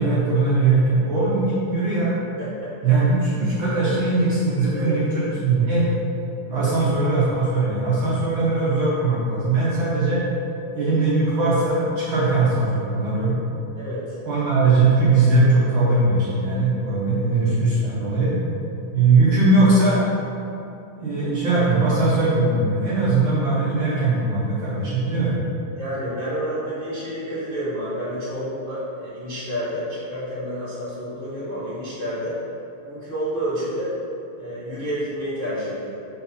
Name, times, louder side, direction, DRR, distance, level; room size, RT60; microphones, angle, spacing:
voice 1, 0.0-2.1 2.8-5.9 6.4-10.3 10.7-13.4 14.3-18.4 18.9-20.1 21.0-25.4, right 3 dB, 60° right, -8 dB, 1.3 m, -20 dB
voice 2, 2.4-2.7 4.7-5.0 6.6-6.7 13.8-14.2 16.8-17.5 25.8-32.4 32.8-33.9 34.4-35.9, equal, 60° left, -11 dB, 0.5 m, -29 dB
5.1 x 4.4 x 5.5 m, 2.9 s
omnidirectional pair, 3.4 m